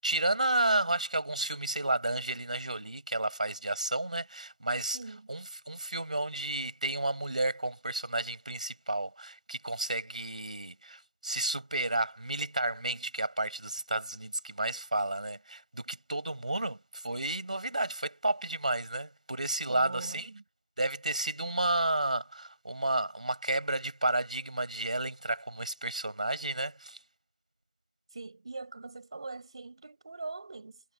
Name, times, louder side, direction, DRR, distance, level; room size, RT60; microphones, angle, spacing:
voice 1, 0.0-5.0 5.3-20.3 20.8-27.0, right 2 dB, 85° right, 7.4 m, -32 dB
voice 2, 4.9-5.3 19.7-20.4 28.1-30.8, right 3 dB, 50° right, 6.9 m, -42 dB
figure-of-eight pair, 170°, 4 cm